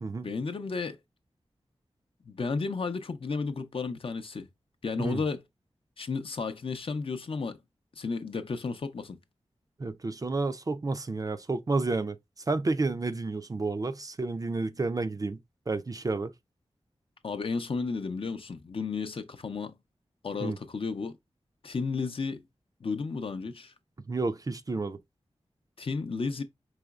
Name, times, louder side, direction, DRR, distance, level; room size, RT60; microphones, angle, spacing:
voice 1, 0.2-1.0 2.2-4.5 4.8-5.4 6.0-7.6 8.0-9.2 17.2-19.7 20.2-21.1 21.6-22.4 22.8-23.7 25.8-26.4, left 4 dB, 55° left, 0.6 m, -33 dB
voice 2, 9.8-12.2 12.5-16.3 20.4-20.6 24.1-25.0, right 3 dB, 35° right, 0.4 m, -30 dB
4.9 x 3.0 x 2.3 m
cardioid pair, 55°, 11 cm